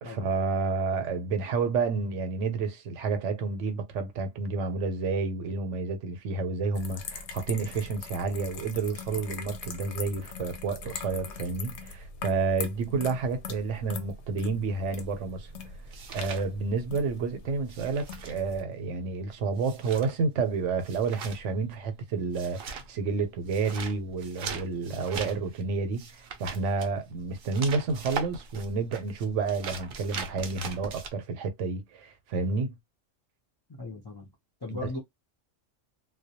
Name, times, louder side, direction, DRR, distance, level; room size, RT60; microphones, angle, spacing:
voice 1, 0.0-15.5 16.1-32.7 34.7-34.8, right 4 dB, 75° right, 0.9 m, -30 dB
sound 1, 6.7-18.6, left 5 dB, 70° left, 0.8 m, -42 dB
sound 2, 15.0-17.2 17.4-31.1, right 6 dB, 60° right, 0.6 m, -41 dB
voice 2, 33.7-34.3 34.6-35.0, left 2 dB, 35° left, 0.4 m, -38 dB
2.2 x 2.1 x 2.8 m
omnidirectional pair, 1.3 m